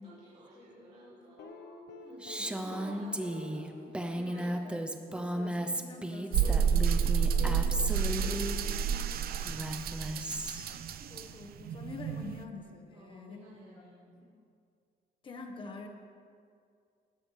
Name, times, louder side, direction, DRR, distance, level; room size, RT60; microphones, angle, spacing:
voice 1, 0.0-4.5 8.5-10.7 11.0-11.1 12.9-14.4, right 1 dB, 40° right, -10 dB, 3.0 m, -54 dB
voice 2, 0.5-1.2 2.1-2.8 4.2-4.8 5.1-8.5 11.1-13.4 15.2-15.9, left 3 dB, 30° left, 3 dB, 1.3 m, -47 dB
sound 1, 1.4-5.5 6.4-10.0 11.4-11.5, left 4 dB, 85° left, 1.0 m, -50 dB
Female speech woman speaking, 2.2-8.6 9.4-10.8, right 1 dB, 5° right, 0.6 m, -35 dB
sound 2, 6.3-12.4, right 7 dB, 60° right, 0.6 m, -30 dB
19.5 x 13.0 x 3.3 m, 2.3 s
cardioid pair, 175°, 17 cm